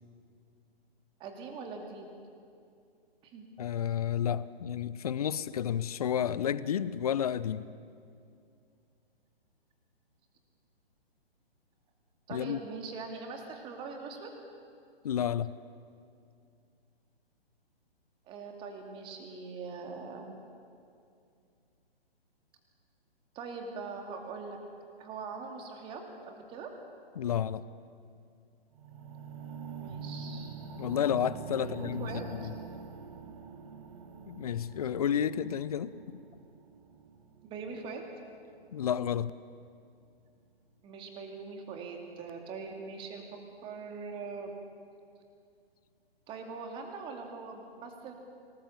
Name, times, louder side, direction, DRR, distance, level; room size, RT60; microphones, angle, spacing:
voice 1, 1.2-2.0 3.2-3.5 12.3-14.3 18.3-20.4 23.3-24.6 25.0-26.7 29.8-30.5 31.5-32.5 37.4-38.0 40.8-43.3 43.6-44.5 46.3-48.1, right 4 dB, 15° right, 3 dB, 2.4 m, -42 dB
voice 2, 3.6-7.7 12.3-12.6 15.0-15.5 27.2-27.6 30.8-32.5 34.3-35.9 38.7-39.3, left 9 dB, 40° left, 17 dB, 0.7 m, -31 dB
sound 1, 28.7-38.8 39.5-39.6, right 5 dB, 35° right, 1.6 m, -45 dB
25.5 x 19.5 x 7.2 m, 2.4 s
figure-of-eight pair, 130°, 31 cm